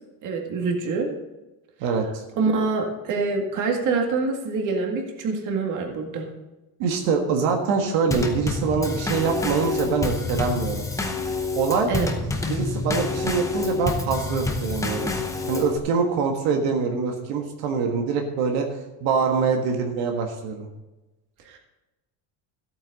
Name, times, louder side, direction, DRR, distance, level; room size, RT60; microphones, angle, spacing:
voice 1, 0.2-1.1 2.4-6.3 11.9-12.1 21.5-21.6, right 4 dB, 40° right, 2 dB, 2.0 m, -25 dB
voice 2, 1.8-2.2 6.8-10.9 11.5-11.9 12.5-18.7 19.0-20.7, right 5 dB, 70° right, 3 dB, 1.7 m, -24 dB
Drum kit / Snare drum / Bass drum, 8.1-15.8, left 3 dB, 5° left, 0.7 m, -28 dB
14.5 x 8.8 x 4.1 m, 1.0 s
cardioid pair, 175°, 49 cm